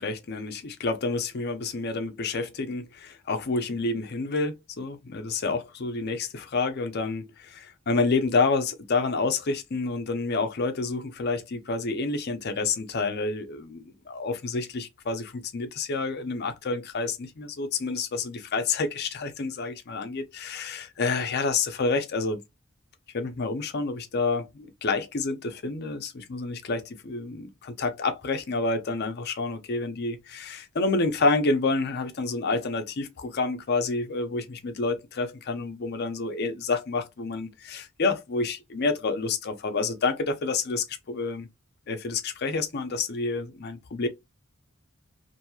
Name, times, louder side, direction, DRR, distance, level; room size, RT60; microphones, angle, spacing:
voice 1, 0.0-22.4 23.1-41.5 41.9-44.1, left 3 dB, 50° left, 0.6 m, -29 dB
2.9 x 2.6 x 2.3 m
head